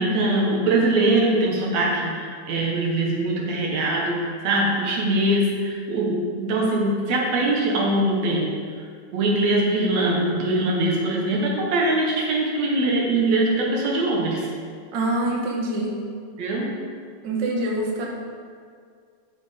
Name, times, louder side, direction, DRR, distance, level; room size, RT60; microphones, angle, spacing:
voice 1, 0.0-8.6 9.1-14.5 16.4-16.7, right 2 dB, 70° right, -2 dB, 2.4 m, -22 dB
voice 2, 14.9-16.0 17.2-18.1, right 1 dB, 50° right, -2 dB, 1.6 m, -25 dB
13.5 x 4.9 x 5.1 m, 2.1 s
omnidirectional pair, 3.3 m